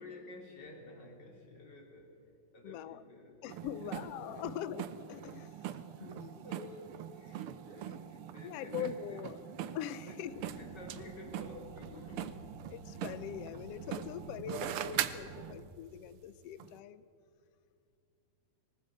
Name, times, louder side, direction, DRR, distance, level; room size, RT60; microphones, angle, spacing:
voice 1, 0.0-2.2 2.5-4.1 6.0-9.5 10.0-12.6 14.8-14.9, left 2 dB, 35° left, 0 dB, 4.0 m, -51 dB
voice 2, 2.6-3.0 3.4-6.5 7.9-8.0 8.4-9.4 9.7-10.4 12.7-17.0, left 10 dB, 85° left, 14 dB, 1.3 m, -42 dB
sound 1, 3.5-15.7 16.6-16.7, right 11 dB, 80° right, 1.2 m, -42 dB
sound 2, 10.3-15.6, right 2 dB, 60° right, 3.9 m, -53 dB
25.0 x 18.5 x 7.8 m, 2.5 s
omnidirectional pair, 3.6 m